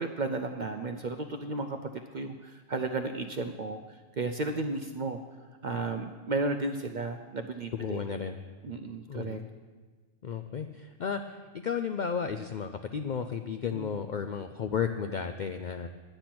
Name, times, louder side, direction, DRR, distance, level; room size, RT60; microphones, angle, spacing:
voice 1, 0.0-5.2 5.6-8.0 8.6-9.4 13.7-14.0, right 3 dB, 55° right, 6 dB, 0.5 m, -34 dB
voice 2, 7.7-8.4 9.1-9.4 10.2-15.9, left 7 dB, 65° left, 7 dB, 0.4 m, -33 dB
10.0 x 9.0 x 6.0 m, 1.4 s
omnidirectional pair, 1.3 m